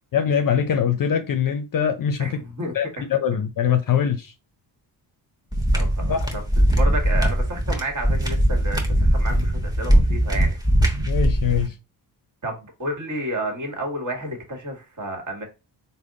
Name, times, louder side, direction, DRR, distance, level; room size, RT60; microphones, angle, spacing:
voice 1, 0.1-2.3 2.7-4.3 6.1-6.2 11.1-11.7, left 8 dB, 45° left, 0.6 m, -22 dB
voice 2, 2.2-3.1 5.7-10.6 12.4-15.4, right 1 dB, 35° right, 1.6 m, -31 dB
sound 1, 5.5-11.7, right 1 dB, 10° right, 1.1 m, -20 dB
3.4 x 2.2 x 3.8 m
supercardioid pair, 55°, 50 cm